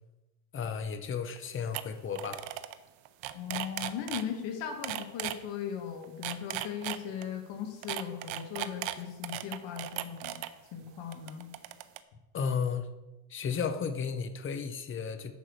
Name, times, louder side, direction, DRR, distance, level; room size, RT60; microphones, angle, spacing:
voice 1, 0.5-2.4 12.3-12.9 13.3-15.3, left 6 dB, 25° left, 8 dB, 0.8 m, -33 dB
sound 1, 1.4-1.5 1.7-1.8 2.1-2.7 3.0-4.2 4.8-5.3 6.0-7.3 7.8-10.5 11.1-12.0, right 15 dB, 80° right, 0.8 m, -36 dB
voice 2, 3.3-10.4 10.7-11.5, left 8 dB, 70° left, 4 dB, 2.0 m, -38 dB
10.0 x 4.7 x 6.6 m, 1.1 s
cardioid pair, 140°, 46 cm